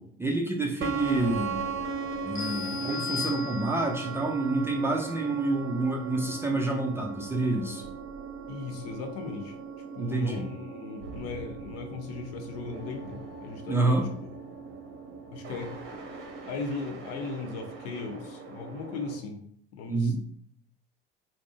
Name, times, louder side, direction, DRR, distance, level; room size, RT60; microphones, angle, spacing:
voice 1, 0.0-1.6 2.2-7.8 10.0-10.4 13.7-14.1 19.9-20.2, right 2 dB, 10° right, 0 dB, 0.4 m, -28 dB
sound 1, 0.8-19.1, right 5 dB, 45° right, 0.7 m, -38 dB
sound 2, 2.4-4.1, left 8 dB, 15° left, 0.7 m, -37 dB
voice 2, 8.5-9.5 9.9-14.1 15.3-15.7 16.5-19.4 19.7-20.2, left 4 dB, 55° left, 4 dB, 0.6 m, -37 dB
3.5 x 2.0 x 2.4 m, 0.64 s
figure-of-eight pair, 65°, 29 cm